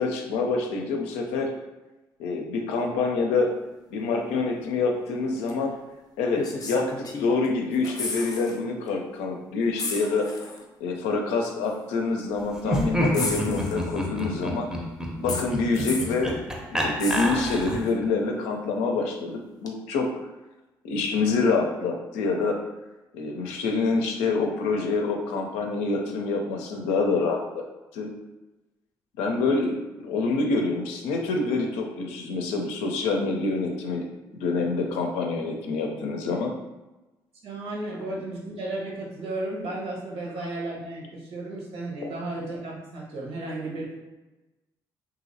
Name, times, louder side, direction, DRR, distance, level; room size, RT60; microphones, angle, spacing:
voice 1, 0.0-1.5 2.2-3.5 3.9-5.7 6.2-6.9 7.2-10.3 10.8-14.7 15.2-20.1 20.8-22.6 23.1-27.6 27.9-28.1 29.2-29.8 30.0-34.0 34.3-36.5 42.0-42.1, left 3 dB, 80° left, 2 dB, 0.5 m, -26 dB
sound 1, 5.5-5.6 6.4-7.5 7.7-8.6 8.9-9.0 9.8-10.6 11.7-11.8 13.1-14.2 15.3-16.2 17.0-17.9 19.7-19.8, left 3 dB, 35° left, 0.7 m, -34 dB
Laughter, 12.6-18.0, equal, 5° right, 0.7 m, -29 dB
voice 2, 37.4-43.9, right 2 dB, 65° right, -4 dB, 1.1 m, -34 dB
2.9 x 2.7 x 2.7 m, 1.1 s
hypercardioid pair, 50°, 11 cm